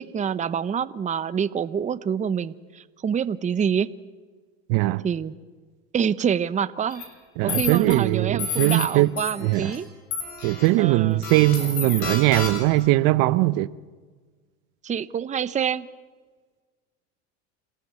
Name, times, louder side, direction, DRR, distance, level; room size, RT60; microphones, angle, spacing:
voice 1, 0.0-3.9 5.0-5.3 5.9-7.0 7.4-9.9 10.8-11.2 14.8-15.9, right 7 dB, 20° right, 0.7 m, -26 dB
voice 2, 4.7-5.0 7.4-9.1 9.4-9.7 10.4-13.7, right 18 dB, 70° right, 0.8 m, -20 dB
sound 1, 6.9-7.0 7.5-7.9 8.4-8.9 9.2-9.8 10.1-10.7 11.2-12.8, left 5 dB, 80° left, 6.7 m, -31 dB
27.0 x 15.0 x 8.2 m
supercardioid pair, 100°, 34 cm